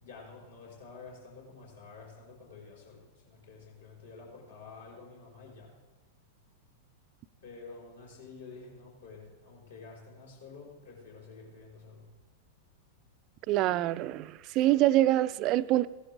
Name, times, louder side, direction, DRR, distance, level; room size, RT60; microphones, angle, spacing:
voice 1, 0.0-5.7 7.4-12.1, left 4 dB, 70° left, -4 dB, 4.4 m, -49 dB
voice 2, 13.5-15.9, right 14 dB, 35° right, 15 dB, 0.4 m, -25 dB
16.0 x 11.5 x 3.7 m, 1.3 s
figure-of-eight pair, 95°, 0 cm